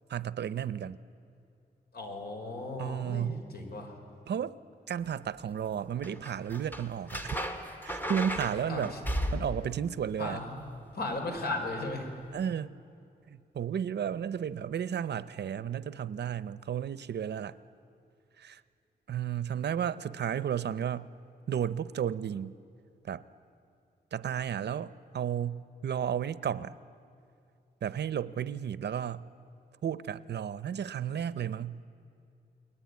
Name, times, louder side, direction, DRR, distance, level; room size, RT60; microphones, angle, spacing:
voice 1, 0.1-1.0 2.8-3.4 4.3-4.6 4.9-7.4 7.8-8.9 9.3-10.4 12.3-12.7 13.3-17.5 18.4-18.6 19.1-21.1 21.5-22.5 23.0-23.2 24.1-26.8 27.8-29.3 29.8-31.8, right 9 dB, 85° right, 16 dB, 0.7 m, -33 dB
voice 2, 1.9-4.0 8.7-9.0 10.2-10.7 10.9-12.1, left 2 dB, 65° left, 3 dB, 4.6 m, -36 dB
sound 1, 6.0-9.7 11.9-12.1, equal, 10° left, 2.1 m, -35 dB
29.5 x 21.0 x 9.6 m, 2.6 s
wide cardioid pair, 130°, 17 cm